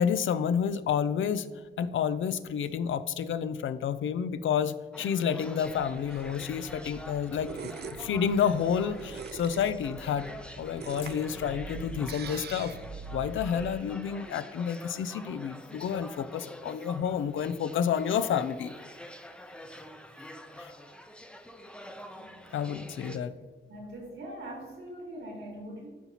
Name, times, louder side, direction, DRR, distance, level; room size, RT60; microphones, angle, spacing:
voice 1, 0.0-1.5 1.8-7.7 8.0-10.3 10.6-12.7 13.1-18.7 20.6-20.7 22.5-23.3, left 8 dB, 80° left, 13 dB, 0.4 m, -29 dB
sound 1, 4.9-23.2, equal, 5° left, 0.6 m, -46 dB
sound 2, 5.6-13.8, right 5 dB, 55° right, 0.5 m, -43 dB
voice 2, 22.1-25.9, right 1 dB, 80° right, 0 dB, 1.8 m, -43 dB
12.0 x 4.1 x 2.9 m, 1.4 s
cardioid pair, 70°, 20 cm